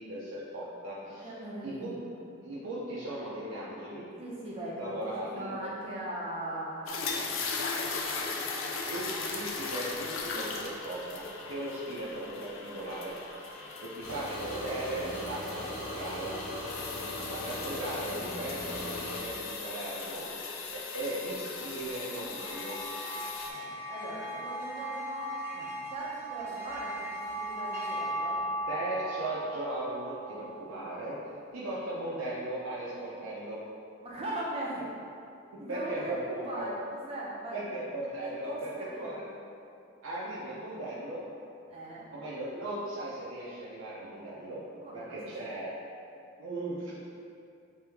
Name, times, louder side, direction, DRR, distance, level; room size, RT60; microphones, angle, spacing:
voice 1, 0.0-1.3 1.6-1.9 2.4-4.1 4.8-5.7 8.2-8.3 8.8-16.3 16.9-20.3 20.7-22.8 28.7-31.2 31.5-33.6 34.8-34.9 35.7-36.7 37.5-39.2 40.0-41.2 42.1-44.6 44.9-45.7 46.4-46.9, right 1 dB, 85° right, -7 dB, 0.5 m, -37 dB
voice 2, 1.2-2.1 4.2-4.9 5.3-9.3 13.6-13.7 17.3-17.5 23.4-28.4 34.0-34.8 35.6-36.7 37.1-37.8 38.2-39.3 41.7-42.1 44.8-45.2, right 1 dB, 30° right, -6 dB, 0.5 m, -40 dB
sound 1, 6.9-23.5, left 4 dB, 85° left, 0.4 m, -38 dB
sound 2, 14.0-19.2, left 1 dB, 40° left, 0.7 m, -39 dB
sound 3, 22.2-30.8, right 1 dB, 10° right, 1.1 m, -37 dB
3.1 x 2.6 x 3.4 m, 2.5 s
head